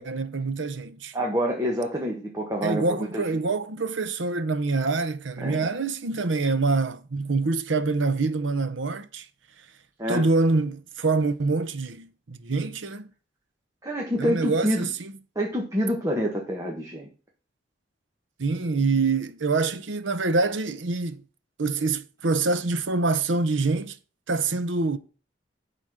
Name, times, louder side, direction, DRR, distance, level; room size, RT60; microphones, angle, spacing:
voice 1, 0.0-1.1 2.6-9.2 10.1-13.1 14.2-15.1 18.4-21.2 21.6-24.0 24.3-25.0, right 3 dB, 85° right, 0.9 m, -25 dB
voice 2, 1.1-3.3 5.4-5.7 10.0-10.3 13.8-14.9 15.3-17.1, equal, 15° right, 1.4 m, -27 dB
11.0 x 4.2 x 6.4 m
head